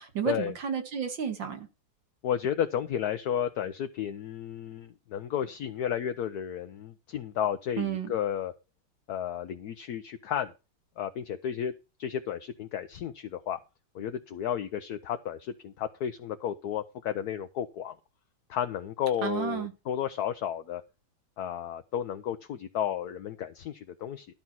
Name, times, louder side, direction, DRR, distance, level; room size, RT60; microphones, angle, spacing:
voice 1, 0.0-1.7 7.8-8.1 19.2-19.7, right 7 dB, 60° right, 2.6 m, -31 dB
voice 2, 2.2-8.5 9.1-10.5 11.0-11.7 12.0-13.6 13.9-18.0 18.5-20.8 21.4-24.3, left 9 dB, 60° left, 1.1 m, -32 dB
12.0 x 5.6 x 6.2 m
omnidirectional pair, 2.3 m